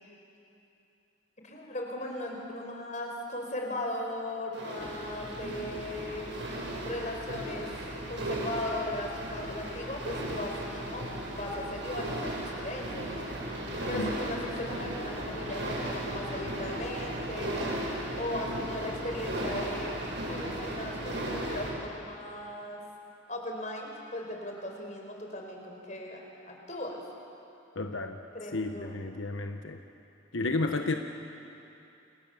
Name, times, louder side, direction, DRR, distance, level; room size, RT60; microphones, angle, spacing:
voice 1, 1.4-6.3 6.8-7.7 8.1-13.3 13.9-17.7 18.2-19.9 20.2-22.8 23.3-27.0 28.3-29.0, left 1 dB, 40° left, 1 dB, 4.9 m, -38 dB
sound 1, 4.5-21.7, right 1 dB, 75° right, 7.3 m, -36 dB
voice 2, 27.7-28.2 28.5-29.8 30.3-30.9, left 2 dB, 85° left, 5 dB, 1.3 m, -32 dB
29.0 x 28.0 x 7.3 m, 2.8 s
head